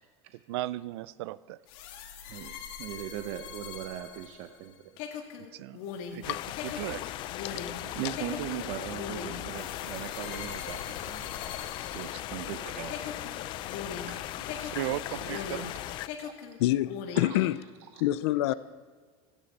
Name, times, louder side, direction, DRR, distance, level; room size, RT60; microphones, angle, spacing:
voice 1, 0.3-1.6 5.4-5.9 6.1-6.4 6.6-7.0 7.8-7.9 11.9-12.2 14.7-15.7, right 15 dB, 85° right, 0.5 m, -36 dB
sound 1, 1.7-12.5 12.9-15.8 16.0-17.4, left 7 dB, 55° left, 1.8 m, -41 dB
voice 2, 2.3-4.8 7.5-7.7 7.9-11.4 11.8-13.3 14.1-14.2 14.5-14.8 15.1-15.4 16.2-16.3 17.2-17.4 17.9-18.0, right 11 dB, 55° right, 0.8 m, -40 dB
sound 2, 6.2-16.1, left 14 dB, 35° left, 0.4 m, -38 dB
voice 3, 16.6-17.6 18.0-18.5, left 15 dB, 90° left, 0.5 m, -27 dB
16.5 x 14.0 x 4.2 m
cardioid pair, 170°, 13 cm